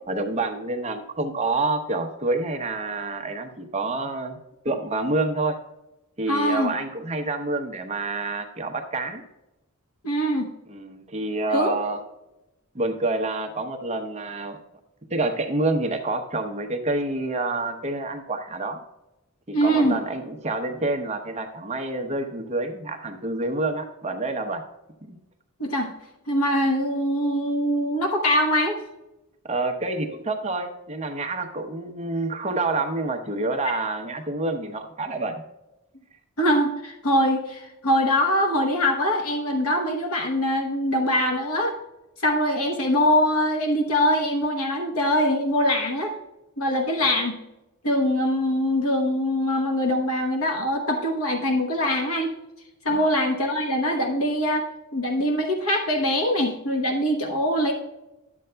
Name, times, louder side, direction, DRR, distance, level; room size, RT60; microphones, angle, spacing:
voice 1, 0.1-4.4 4.6-5.6 6.2-9.2 10.7-12.0 12.7-14.6 15.1-18.8 19.5-24.6 25.1-25.2 29.4-35.4 52.9-53.1, right 2 dB, 30° right, 4 dB, 0.8 m, -28 dB
voice 2, 6.3-6.7 10.0-10.5 11.5-11.7 19.5-20.0 25.6-25.9 26.3-28.8 36.4-41.7 42.2-46.1 46.6-47.4 47.8-52.4 52.8-54.6 54.9-57.7, equal, 70° left, 3 dB, 1.0 m, -23 dB
12.0 x 7.6 x 2.2 m, 0.96 s
head